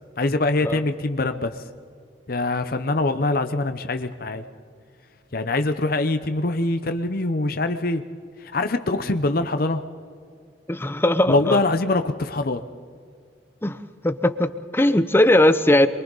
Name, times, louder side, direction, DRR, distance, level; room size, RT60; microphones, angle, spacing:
voice 1, 0.2-1.6 2.3-4.4 5.3-8.0 8.4-9.8 11.3-12.6, left 2 dB, 55° left, 8 dB, 0.9 m, -23 dB
voice 2, 10.7-11.6 13.6-15.9, left 1 dB, 15° left, 12 dB, 0.7 m, -19 dB
27.5 x 23.5 x 4.1 m, 2.1 s
head